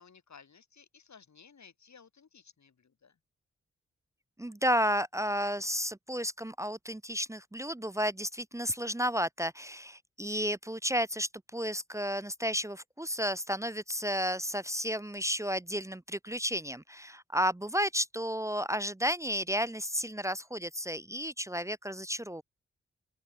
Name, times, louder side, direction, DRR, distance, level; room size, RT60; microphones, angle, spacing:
voice 1, 0.0-3.2, left 6 dB, 65° left, 7.2 m, -57 dB
voice 2, 4.4-22.4, equal, 10° right, 0.8 m, -32 dB
open air
supercardioid pair, 40°, 30 cm